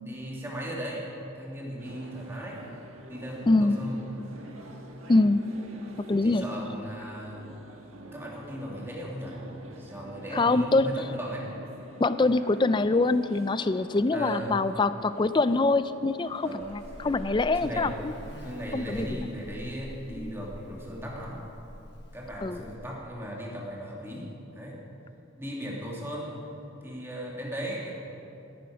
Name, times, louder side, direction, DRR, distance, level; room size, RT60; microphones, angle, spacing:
voice 1, 0.0-2.6 3.1-4.0 6.2-7.5 8.1-9.4 9.7-11.5 14.1-14.6 16.4-16.7 17.5-17.9 18.4-21.4 22.1-24.8 25.4-26.4 26.8-28.1, equal, 10° right, -3 dB, 2.1 m, -37 dB
sound 1, 1.8-18.9, right 1 dB, 90° right, 1.5 m, -48 dB
voice 2, 3.5-3.8 5.1-5.4 6.1-6.4 10.3-10.9 12.0-18.1 18.7-19.3 20.1-20.3 22.4-22.6, left 3 dB, 25° left, 13 dB, 0.3 m, -24 dB
Buzz, 16.6-22.8, equal, 55° left, 1.3 m, -44 dB
17.5 x 10.5 x 4.9 m, 2.8 s
head